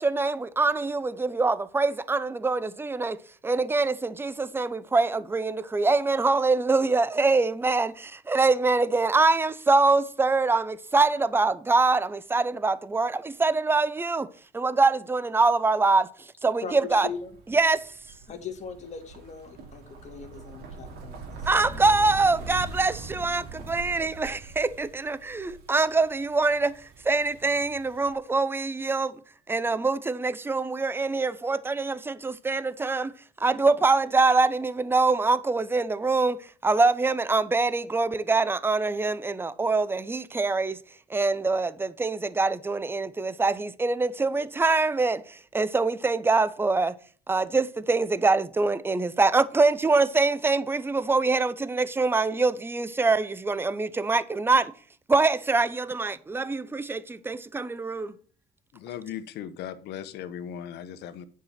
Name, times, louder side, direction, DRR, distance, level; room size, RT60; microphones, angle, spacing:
voice 1, 0.0-14.3 14.5-17.1 17.5-17.9 21.5-29.2 29.5-40.8 41.1-46.9 47.3-54.7 55.1-58.1, right 3 dB, 15° right, 0.6 m, -24 dB
voice 2, 16.6-17.3 18.3-21.8, left 6 dB, 45° left, 2.1 m, -40 dB
sound 1, 16.9-28.1, right 4 dB, 75° right, 2.6 m, -43 dB
voice 3, 58.7-61.3, left 9 dB, 80° left, 1.0 m, -38 dB
9.7 x 4.8 x 5.7 m
cardioid pair, 110°, 17 cm